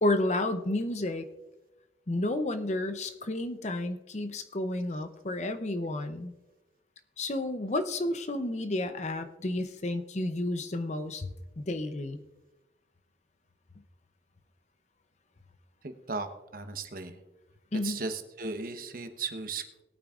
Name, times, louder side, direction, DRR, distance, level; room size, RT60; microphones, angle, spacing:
voice 1, 0.0-1.2 2.1-6.3 7.2-11.3 11.6-12.2 17.7-18.0, left 1 dB, 40° left, 9 dB, 0.7 m, -31 dB
voice 2, 15.8-16.3 16.5-17.2 17.8-19.8, right 4 dB, 50° right, 7 dB, 1.0 m, -36 dB
20.0 x 8.9 x 2.5 m, 1.0 s
head